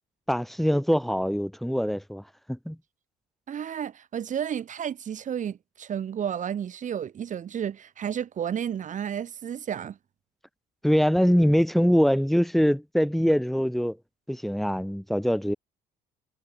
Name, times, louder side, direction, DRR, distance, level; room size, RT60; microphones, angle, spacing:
voice 1, 0.3-2.2 2.5-2.8 10.8-14.0 14.3-15.5, equal, ahead, 5.4 m, -23 dB
voice 2, 3.5-10.0, right 9 dB, 50° right, 3.5 m, -32 dB
cardioid pair, 110°, 17 cm